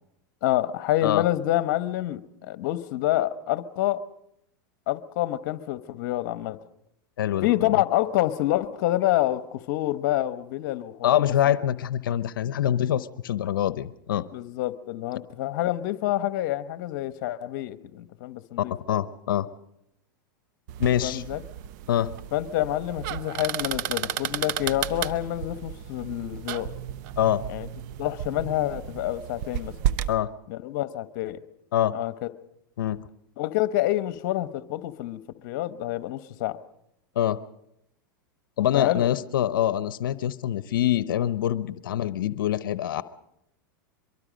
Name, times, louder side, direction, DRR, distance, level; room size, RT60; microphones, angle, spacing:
voice 1, 0.4-4.0 4.9-6.6 7.4-11.3 14.3-18.7 21.0-21.4 22.3-26.7 27.5-27.7 28.0-29.7 30.5-31.4 31.9-32.3 33.4-36.6 38.7-39.1, left 14 dB, 60° left, 13 dB, 1.1 m, -27 dB
voice 2, 7.2-7.5 11.0-14.2 18.9-19.5 20.8-21.2 21.9-22.1 27.2-27.4 30.1-30.3 31.7-31.9 32.8-33.0 37.2-37.4 38.6-43.0, left 11 dB, 80° left, 15 dB, 0.8 m, -24 dB
sound 1, 20.7-30.1, right 11 dB, 60° right, 0.8 m, -33 dB
23.5 x 23.0 x 5.2 m, 0.79 s
hypercardioid pair, 115°, 11 cm